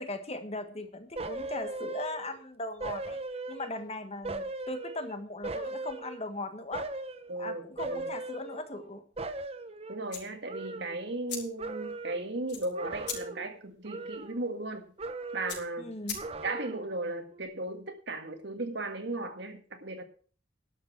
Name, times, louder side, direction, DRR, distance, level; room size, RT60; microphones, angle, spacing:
voice 1, 0.0-3.2 3.5-6.8 7.4-9.0 15.8-16.2, left 2 dB, 35° left, 8 dB, 1.5 m, -38 dB
sound 1, 1.2-2.4 2.8-3.9 4.2-6.4 6.7-7.3 7.8-8.9 9.2-11.3 11.6-12.3 12.7-13.5 13.8-14.7 15.0-15.7 16.1-16.9 17.3-17.4, right 2 dB, 30° right, 1.0 m, -39 dB
voice 2, 7.3-8.1 9.9-14.9 15.3-15.9 16.4-20.0, right 2 dB, 65° right, 6 dB, 1.9 m, -36 dB
sound 2, 10.0-16.7, left 6 dB, 60° left, 4.8 m, -44 dB
12.0 x 6.6 x 7.4 m, 0.42 s
head